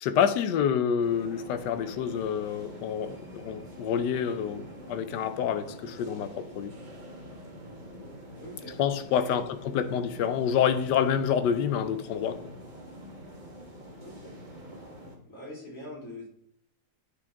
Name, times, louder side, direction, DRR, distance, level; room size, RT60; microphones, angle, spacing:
voice 1, 0.0-6.7 8.8-12.4, left 8 dB, 90° left, 1.3 m, -28 dB
sound 1, 1.0-15.1, equal, 30° right, 1.5 m, -45 dB
voice 2, 8.3-8.8 9.1-9.5 14.0-14.4 15.3-16.3, left 1 dB, 50° left, 3.4 m, -43 dB
9.9 x 4.9 x 3.5 m
omnidirectional pair, 1.8 m